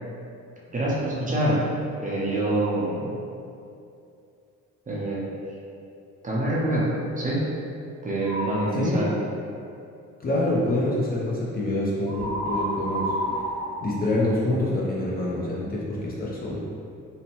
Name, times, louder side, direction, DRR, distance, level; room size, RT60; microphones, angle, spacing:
voice 1, 0.7-1.7 2.0-3.2 4.9-5.2 6.2-7.5 8.0-9.1, right 1 dB, 25° right, -6 dB, 0.6 m, -25 dB
sound 1, 8.2-8.8 12.1-14.8, equal, 80° right, 0.5 m, -30 dB
voice 2, 10.2-13.5 13.8-16.8, left 1 dB, 30° left, -6 dB, 0.5 m, -26 dB
2.7 x 2.1 x 2.8 m, 2.5 s
cardioid pair, 90°, 30 cm